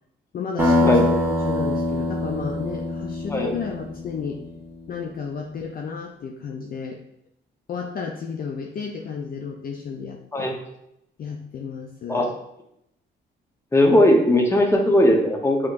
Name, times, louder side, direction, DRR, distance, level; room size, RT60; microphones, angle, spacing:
voice 1, 0.3-4.4 4.9-7.0 7.7-10.5 11.2-12.3, left 6 dB, 50° left, 3 dB, 0.4 m, -32 dB
sound 1, 0.6-4.4, left 2 dB, 10° right, 1.3 m, -23 dB
voice 2, 13.7-15.6, left 1 dB, 15° left, 2 dB, 0.8 m, -18 dB
6.2 x 2.9 x 2.5 m, 0.79 s
cardioid pair, 90°, 20 cm